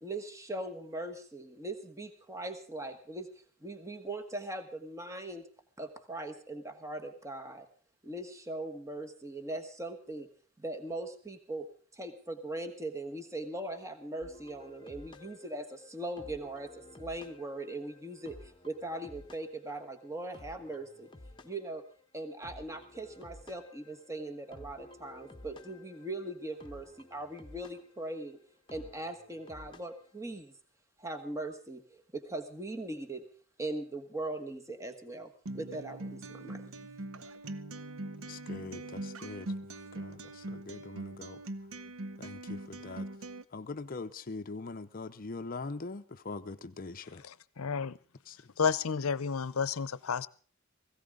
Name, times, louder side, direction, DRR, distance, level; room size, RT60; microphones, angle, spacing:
voice 1, 0.0-3.3 3.6-5.4 5.8-7.7 8.0-10.3 10.6-11.7 11.9-16.7 17.0-21.1 21.4-21.8 22.1-28.4 28.7-30.5 31.0-33.2 33.6-36.6, right 2 dB, 15° right, 5 dB, 1.4 m, -40 dB
sound 1, 14.2-30.2, left 2 dB, 20° left, 1.0 m, -54 dB
Acoustic guitar, 35.5-43.4, right 2 dB, 75° right, 0.8 m, -42 dB
voice 2, 38.2-41.4 42.2-43.1 43.5-47.2 48.3-48.6, left 3 dB, 40° left, 9 dB, 0.6 m, -43 dB
voice 3, 47.6-48.0 48.6-50.3, left 6 dB, 85° left, 19 dB, 0.7 m, -30 dB
17.5 x 16.5 x 3.7 m, 0.42 s
head